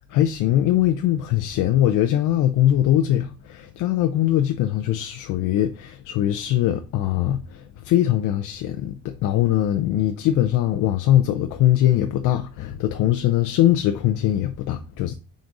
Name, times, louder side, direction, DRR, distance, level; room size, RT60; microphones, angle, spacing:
voice 1, 0.1-7.4 7.9-15.1, left 12 dB, 90° left, 0.6 m, -21 dB
5.1 x 3.9 x 4.7 m
cardioid pair, 90°, 30 cm